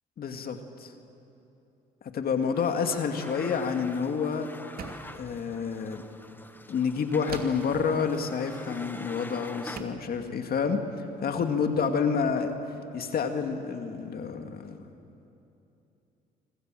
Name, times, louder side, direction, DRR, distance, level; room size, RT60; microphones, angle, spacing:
voice 1, 0.2-0.9 2.1-4.5 5.1-6.0 6.7-12.5 12.9-14.8, left 6 dB, 55° left, 5 dB, 2.4 m, -29 dB
sound 1, 2.5-9.8, left 1 dB, 10° left, 1.5 m, -45 dB
sound 2, 4.8-5.2 7.3-7.7 9.1-9.2 9.8-10.1, right 6 dB, 55° right, 2.9 m, -40 dB
26.5 x 25.5 x 7.8 m, 2.8 s
supercardioid pair, 80°, 19 cm